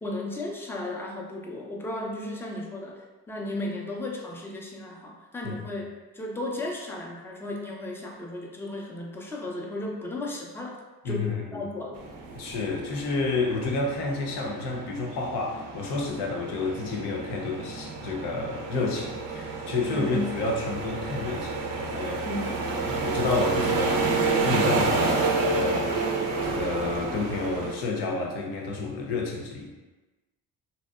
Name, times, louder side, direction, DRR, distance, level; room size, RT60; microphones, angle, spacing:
voice 1, 0.0-5.9 6.1-10.7 11.0-12.0 19.9-20.3 22.2-22.9, left 1 dB, 5° left, -1 dB, 0.3 m, -35 dB
voice 2, 11.0-11.6 12.3-22.3 22.8-25.9 26.4-29.7, left 3 dB, 70° left, 0 dB, 0.6 m, -30 dB
sound 1, 12.0-27.7, right 3 dB, 55° right, 0.5 m, -30 dB
2.6 x 2.0 x 2.3 m, 1.2 s
supercardioid pair, 65°, 42 cm